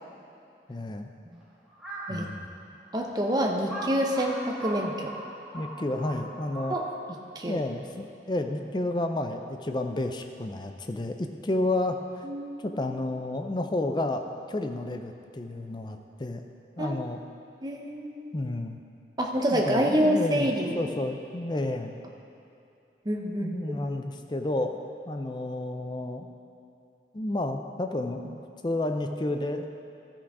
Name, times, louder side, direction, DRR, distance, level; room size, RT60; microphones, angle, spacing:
voice 1, 0.7-1.1 2.1-2.5 5.5-6.8 7.5-12.0 12.6-16.4 16.8-17.2 18.3-18.8 19.5-22.0 23.4-24.8 25.1-26.3 27.1-29.7, left 2 dB, 25° left, 5 dB, 0.5 m, -31 dB
Crow, 1.7-2.2 2.8-2.9 3.7-7.1, right 1 dB, ahead, 1.9 m, -38 dB
voice 2, 2.9-5.1 6.7-6.8 7.1-7.6 12.2-12.6 16.8-16.9 17.6-18.3 19.2-20.9 23.1-23.5, equal, 25° right, 1 dB, 0.7 m, -27 dB
12.5 x 6.0 x 4.8 m, 2.8 s
head